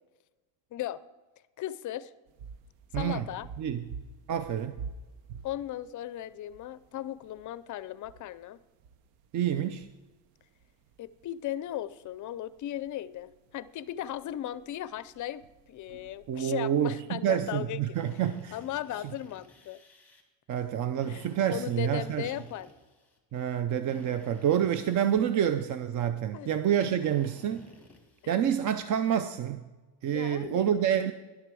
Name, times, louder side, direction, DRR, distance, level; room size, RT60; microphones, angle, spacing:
voice 1, 0.7-1.0 1.6-2.1 2.9-3.5 5.4-8.6 11.0-18.0 18.5-19.8 21.1-22.7 26.3-26.5 28.2-28.3 30.1-31.1, left 12 dB, 40° left, 17 dB, 0.5 m, -37 dB
sound 1, 2.3-18.2, right 5 dB, 85° right, 0.9 m, -49 dB
voice 2, 2.9-3.2 3.6-3.8 4.3-4.7 9.3-9.9 16.3-18.6 20.5-22.3 23.3-27.7 28.3-29.6 30.0-31.1, right 9 dB, 40° right, 11 dB, 0.5 m, -28 dB
Drill, 17.9-20.2 21.0-23.2 23.9-25.8 27.0-28.3, left 3 dB, 5° left, 2.1 m, -54 dB
11.5 x 7.9 x 6.2 m, 1.2 s
cardioid pair, 125°, 46 cm